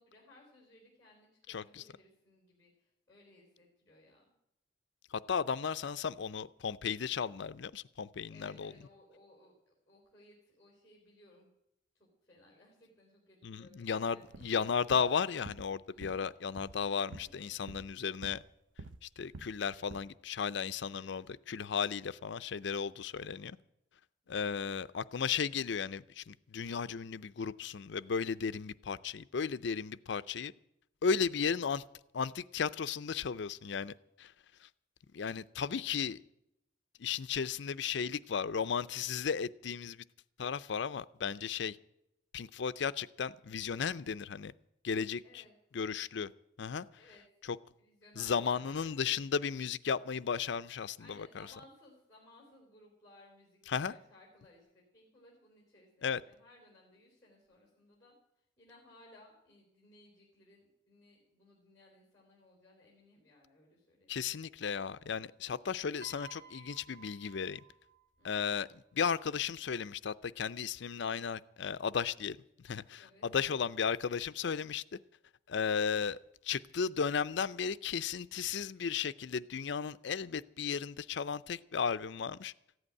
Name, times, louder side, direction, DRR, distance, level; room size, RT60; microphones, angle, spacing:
voice 1, 0.0-4.2 8.3-11.5 11.9-14.3 15.9-16.2 17.1-17.5 20.8-21.3 45.2-45.5 47.0-47.2 47.8-49.2 51.0-58.1 58.6-64.4 68.2-68.3 73.0-73.6, left 1 dB, 15° left, -2 dB, 3.7 m, -61 dB
voice 2, 1.5-1.8 5.1-8.7 13.4-18.4 19.0-23.6 24.3-30.5 31.0-31.8 32.1-34.3 34.6-34.7 35.1-36.2 37.0-40.0 40.4-41.8 42.3-44.5 44.8-45.4 45.7-46.3 46.6-46.9 47.4-47.6 48.2-51.5 53.7-53.9 56.0-56.2 64.1-67.6 68.2-68.7 68.9-72.4 72.6-74.8 75.5-76.2 76.4-82.5, left 6 dB, 65° left, 15 dB, 0.5 m, -35 dB
sound 1, 14.2-14.6 14.9-15.2 15.4-15.7 16.0-16.3 16.6-16.8 17.1-17.4 17.7-18.5 18.8-19.1 19.3-19.6 19.9-20.0, right 3 dB, 75° right, 0.6 m, -49 dB
Piano, 66.0-68.4 69.4-69.7, right 5 dB, 50° right, 2.6 m, -55 dB
14.5 x 8.0 x 9.8 m, 0.82 s
head